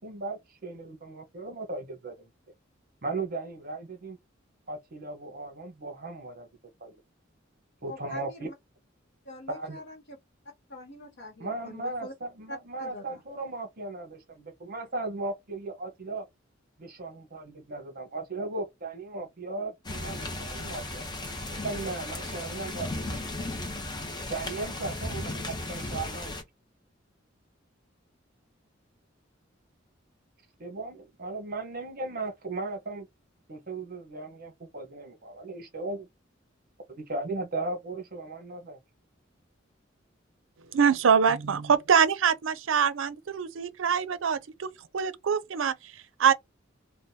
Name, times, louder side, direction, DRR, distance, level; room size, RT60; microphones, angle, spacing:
voice 1, 0.0-2.3 3.0-4.2 4.7-6.5 6.8-6.9 7.8-8.5 9.5-9.8 11.4-16.2 16.8-21.1 21.6-23.6 24.3-26.4 30.6-33.1 33.5-36.1 36.9-38.8, right 3 dB, 50° right, 1.0 m, -37 dB
voice 2, 7.9-8.5 9.3-10.2 10.7-12.1 12.5-13.2, left 1 dB, 65° left, 0.9 m, -43 dB
sound 1, 19.8-26.4, left 2 dB, 20° left, 0.8 m, -35 dB
voice 3, 40.7-46.3, right 7 dB, 75° right, 0.5 m, -24 dB
3.6 x 2.2 x 2.7 m
head